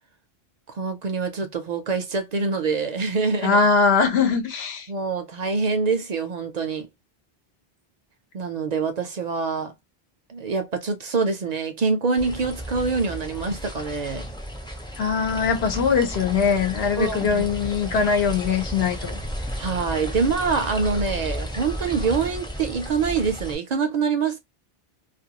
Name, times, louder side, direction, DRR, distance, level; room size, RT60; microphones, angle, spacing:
voice 1, 0.7-3.6 4.9-6.9 8.3-9.7 10.3-14.3 17.0-17.5 17.9-18.1 19.6-24.4, right 4 dB, 55° right, 0.5 m, -25 dB
voice 2, 3.4-4.9 15.0-19.2, left 5 dB, 85° left, 1.0 m, -21 dB
sound 1, 12.2-23.6, equal, 5° left, 0.4 m, -33 dB
2.4 x 2.2 x 2.8 m
omnidirectional pair, 1.0 m